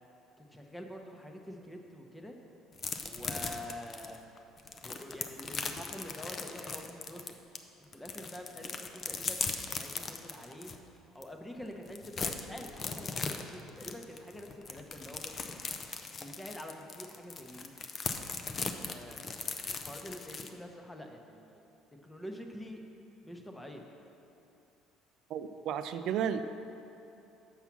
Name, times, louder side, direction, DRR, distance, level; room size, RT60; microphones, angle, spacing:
voice 1, 0.4-2.4 3.0-4.2 4.8-7.4 7.9-10.7 11.1-15.7 16.2-17.7 18.6-19.4 19.6-21.6 22.0-22.8 23.2-23.8, left 1 dB, 10° left, 2 dB, 0.8 m, -46 dB
sound 1, 2.8-7.6 7.9-10.8 11.2-11.3 11.6-20.5, left 4 dB, 35° left, 0.5 m, -38 dB
voice 2, 25.3-26.4, right 8 dB, 65° right, 9 dB, 0.3 m, -33 dB
7.2 x 5.5 x 6.0 m, 2.8 s
cardioid pair, 110°, 0 cm